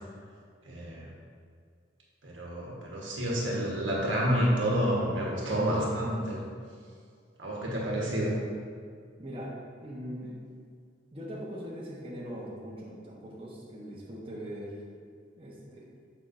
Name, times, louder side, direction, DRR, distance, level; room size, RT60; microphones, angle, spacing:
voice 1, 0.6-1.1 2.2-6.4 7.4-8.4, equal, 85° right, -4 dB, 1.3 m, -29 dB
voice 2, 9.2-9.5 9.8-10.3 11.1-14.7 15.4-15.9, equal, 30° right, -6 dB, 1.0 m, -41 dB
6.8 x 5.5 x 2.6 m, 2.1 s
head